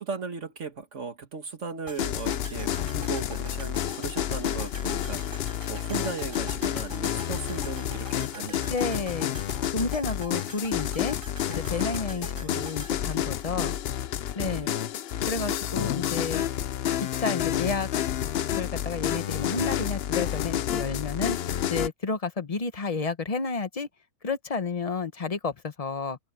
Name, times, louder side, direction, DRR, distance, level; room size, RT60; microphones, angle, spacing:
voice 1, 0.0-9.1 11.6-12.7 14.4-14.9, right 5 dB, 60° right, 1.9 m, -38 dB
sound 1, 1.9-14.0 14.3-14.4, right 1 dB, 20° right, 4.0 m, -45 dB
sound 2, 2.0-21.9, left 10 dB, 60° left, 0.7 m, -30 dB
voice 2, 8.7-9.3 9.7-11.2 11.5-13.7 14.3-14.7 15.3-16.5 17.2-17.9 18.6-21.4 21.7-23.9 24.2-26.2, left 4 dB, 30° left, 1.0 m, -31 dB
omnidirectional pair, 1.4 m